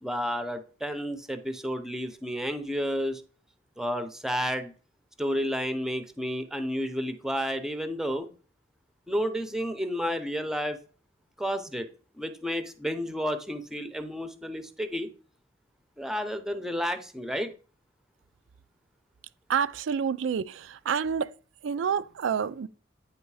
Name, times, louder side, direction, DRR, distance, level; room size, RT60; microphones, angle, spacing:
voice 1, 0.0-3.2 3.8-4.7 5.2-8.3 9.1-10.8 11.4-11.9 12.2-15.1 16.0-17.5, equal, 5° right, 0.6 m, -31 dB
voice 2, 19.5-21.3 21.6-22.7, right 7 dB, 90° right, 0.4 m, -28 dB
9.0 x 3.0 x 4.7 m
head